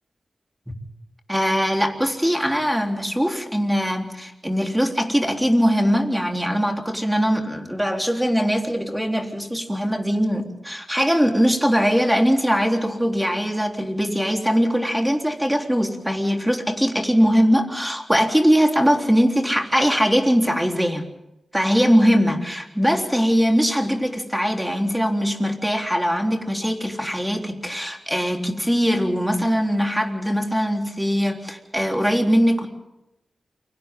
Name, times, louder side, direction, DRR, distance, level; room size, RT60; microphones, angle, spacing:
voice 1, 1.3-21.1 21.5-32.7, equal, 5° right, 2 dB, 3.7 m, -21 dB
29.0 x 24.5 x 3.8 m, 0.89 s
wide cardioid pair, 70°, 0 cm